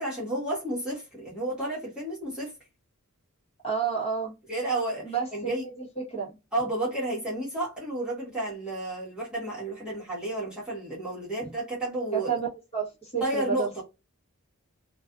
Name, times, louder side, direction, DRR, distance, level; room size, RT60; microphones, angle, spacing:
voice 1, 0.0-2.5 4.5-5.6 6.5-12.4 13.2-13.8, right 1 dB, 5° right, 1.1 m, -31 dB
voice 2, 3.6-4.3 5.0-5.3 5.8-5.9 6.1-6.3 12.1-12.5 12.7-13.8, right 6 dB, 25° left, 1.1 m, -29 dB
2.4 x 2.3 x 2.3 m
head